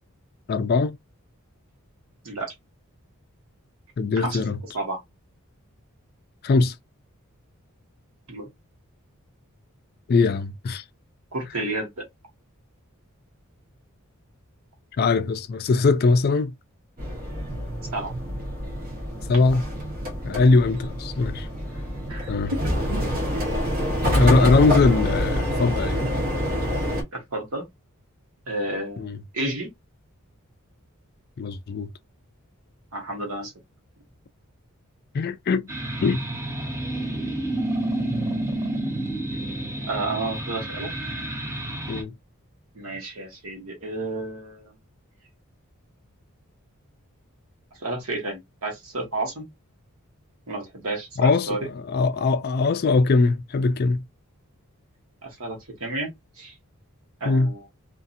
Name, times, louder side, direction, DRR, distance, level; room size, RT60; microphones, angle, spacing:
voice 1, 0.5-1.0 4.0-4.6 6.4-6.8 10.1-10.8 15.0-16.5 19.3-19.6 20.2-21.5 22.3-22.5 24.1-26.0 29.0-29.2 31.4-31.9 35.1-35.7 36.0-36.2 41.9-42.1 51.2-54.0 57.3-57.5, left 3 dB, 45° left, 0.3 m, -21 dB
voice 2, 11.3-12.0 17.9-18.1 20.3-20.6 22.1-22.7 27.1-27.6 28.5-29.7 32.9-33.5 38.0-38.1 39.9-40.9 42.7-44.7 47.8-49.5 50.5-51.6 55.2-56.1 56.4-56.5 57.2-57.6, right 2 dB, 70° right, 1.2 m, -31 dB
sound 1, 17.0-27.0, equal, 40° right, 0.9 m, -26 dB
sound 2, 35.7-42.0, right 1 dB, 10° right, 0.6 m, -29 dB
2.7 x 2.5 x 2.5 m
head